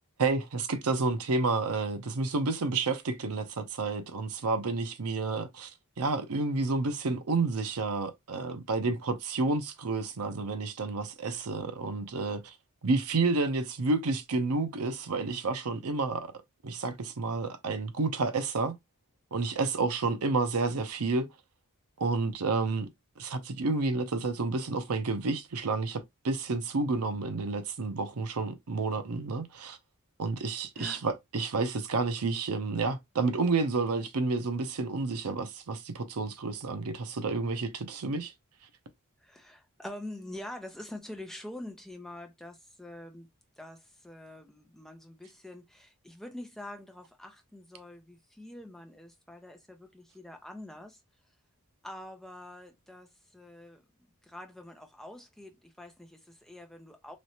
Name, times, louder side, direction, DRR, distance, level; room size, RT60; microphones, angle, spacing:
voice 1, 0.2-5.7 6.0-12.5 12.8-16.3 16.6-18.7 19.3-21.3 22.0-22.9 23.2-29.8 30.2-38.3, right 3 dB, 80° right, 0.6 m, -30 dB
voice 2, 39.2-43.3 43.6-51.0 51.8-53.8 54.2-57.2, left 1 dB, ahead, 0.7 m, -45 dB
3.1 x 3.1 x 2.8 m
head